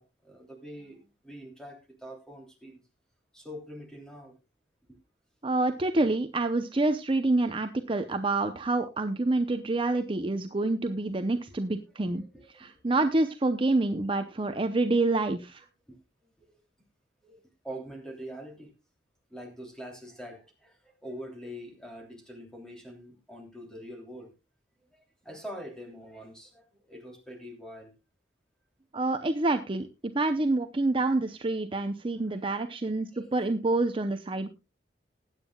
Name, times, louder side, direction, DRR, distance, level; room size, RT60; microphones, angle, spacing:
voice 1, 0.0-2.8 3.3-4.4 12.1-12.8 15.9-16.0 16.4-16.6 17.2-17.4 17.6-18.7 19.3-24.3 24.9-27.9 32.2-32.6 33.1-33.5, equal, 5° left, 2 dB, 3.1 m, -44 dB
voice 2, 5.4-12.2 12.6-15.6 28.9-29.9 30.1-34.5, right 2 dB, 30° right, 7 dB, 0.7 m, -27 dB
20.0 x 9.1 x 2.3 m, 0.27 s
head